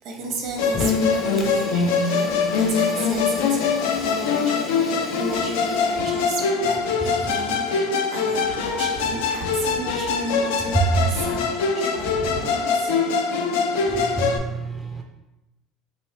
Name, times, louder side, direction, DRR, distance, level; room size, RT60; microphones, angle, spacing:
voice 1, 0.0-12.9 14.2-14.3, right 3 dB, 65° right, 2 dB, 0.9 m, -33 dB
Musical instrument, 0.6-14.4, left 5 dB, 90° left, 0.4 m, -23 dB
Fire, 0.7-6.3, left 3 dB, 40° left, 0.7 m, -36 dB
voice 2, 13.9-15.0, right 5 dB, 15° right, 2 dB, 0.4 m, -26 dB
3.1 x 2.6 x 4.2 m, 0.98 s
supercardioid pair, 105°, 0 cm